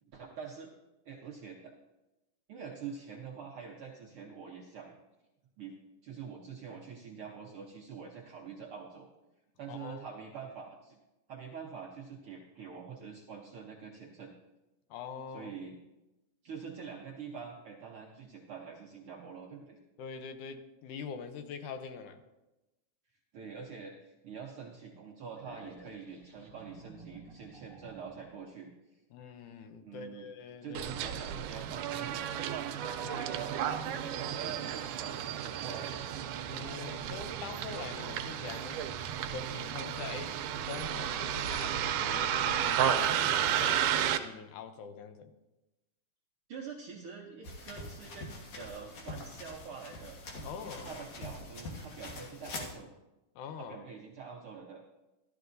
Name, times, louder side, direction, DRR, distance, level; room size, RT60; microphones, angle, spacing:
voice 1, 0.1-0.7 1.0-1.7 2.5-5.0 5.6-5.7 6.0-9.1 9.6-11.0 11.3-14.3 15.3-15.8 16.4-19.8 23.3-29.0 29.8-30.3 30.6-32.3 33.0-36.1 46.5-48.3 48.6-52.9 53.6-54.8, right 6 dB, 65° right, -2 dB, 1.3 m, -45 dB
voice 2, 9.7-10.0 14.9-15.5 20.0-22.2 29.1-30.8 33.0-33.3 36.5-38.9 39.3-40.4 40.7-43.9 44.2-45.3 50.4-50.9 53.4-53.8, left 6 dB, 80° left, 8 dB, 2.1 m, -44 dB
sound 1, 25.3-28.4, right 1 dB, 25° left, 2.1 m, -53 dB
Bus, 30.7-44.2, right 9 dB, 85° right, 2.1 m, -33 dB
sound 2, 47.4-52.8, left 2 dB, 60° left, 2.5 m, -44 dB
13.5 x 13.0 x 2.6 m, 1.0 s
omnidirectional pair, 3.6 m